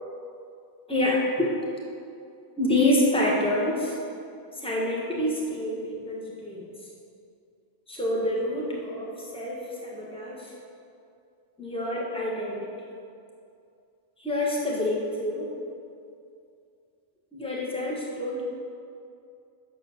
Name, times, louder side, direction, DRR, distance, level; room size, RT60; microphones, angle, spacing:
voice 1, 0.9-1.5 2.6-4.0 4.5-6.7 7.9-10.5 11.6-12.7 14.2-15.5 17.3-18.5, left 1 dB, 5° left, -4 dB, 1.5 m, -27 dB
8.8 x 6.6 x 6.7 m, 2.5 s
omnidirectional pair, 1.1 m